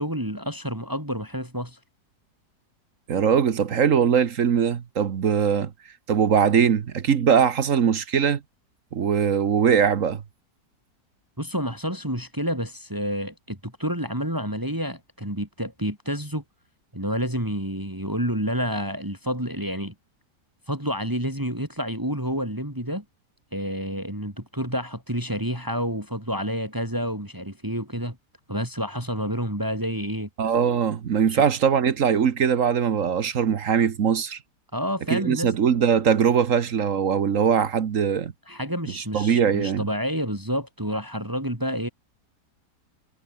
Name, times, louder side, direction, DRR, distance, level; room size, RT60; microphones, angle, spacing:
voice 1, 0.0-1.8 11.4-16.4 16.9-19.9 20.7-23.0 23.5-28.2 28.5-30.3 31.3-31.4 34.7-35.5 38.5-41.9, equal, 10° right, 4.5 m, -29 dB
voice 2, 3.1-5.7 6.1-8.4 8.9-10.2 30.4-34.4 35.1-38.3 39.0-39.8, right 7 dB, 55° right, 1.4 m, -21 dB
omnidirectional pair, 1.8 m